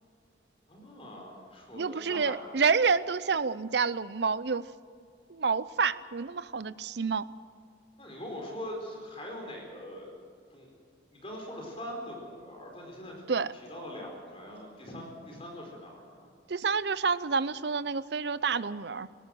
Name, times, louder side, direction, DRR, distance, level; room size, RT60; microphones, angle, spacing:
voice 1, 0.7-2.4 8.0-10.1 10.5-10.7 11.1-13.2 13.7-16.3, equal, 30° left, 0 dB, 4.6 m, -42 dB
voice 2, 1.7-4.6 5.3-7.2 13.3-13.5 16.5-19.1, right 5 dB, 60° right, 16 dB, 0.6 m, -28 dB
19.0 x 17.5 x 7.8 m, 2.2 s
head